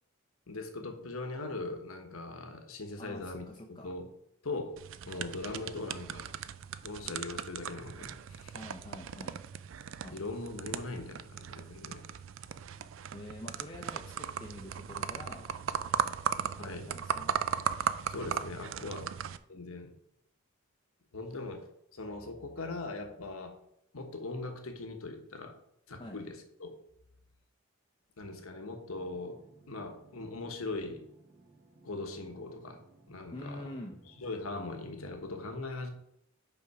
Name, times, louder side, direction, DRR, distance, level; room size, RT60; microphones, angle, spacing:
voice 1, 0.5-4.1 4.4-4.8 5.0-6.3 6.8-8.5 10.1-12.1 16.5-16.9 18.1-19.1 19.5-19.9 21.1-21.7 21.9-23.6 23.9-25.6 25.9-26.7 28.2-29.4 29.7-31.0 31.8-32.8 33.1-33.7 34.2-35.9, left 2 dB, 80° left, 5 dB, 1.2 m, -40 dB
voice 2, 3.0-3.9 8.5-9.4 10.0-10.1 13.1-15.5 16.6-17.4 18.8-19.3 26.0-26.2 33.3-34.0, left 1 dB, 20° left, -1 dB, 0.6 m, -46 dB
sound 1, 4.8-19.4, right 8 dB, 65° right, 0.4 m, -37 dB
sound 2, 28.9-34.7, right 2 dB, 45° right, 1.4 m, -61 dB
5.6 x 5.3 x 4.8 m, 0.76 s
head